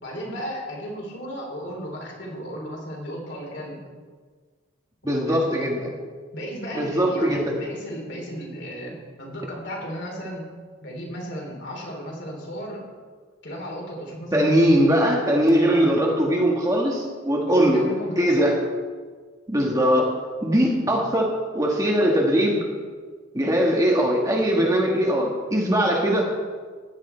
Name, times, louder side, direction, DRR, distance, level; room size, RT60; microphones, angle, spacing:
voice 1, 0.0-3.8 5.0-5.7 6.3-10.5 10.8-12.8 13.4-15.0 15.7-15.9 17.4-18.5 20.8-20.9, equal, 55° left, -1 dB, 3.4 m, -35 dB
voice 2, 5.0-5.8 6.7-7.5 14.3-17.9 18.2-18.6 19.5-20.1 20.4-22.6 23.3-26.2, equal, 15° right, -1 dB, 1.5 m, -20 dB
15.0 x 10.5 x 4.4 m, 1.5 s
head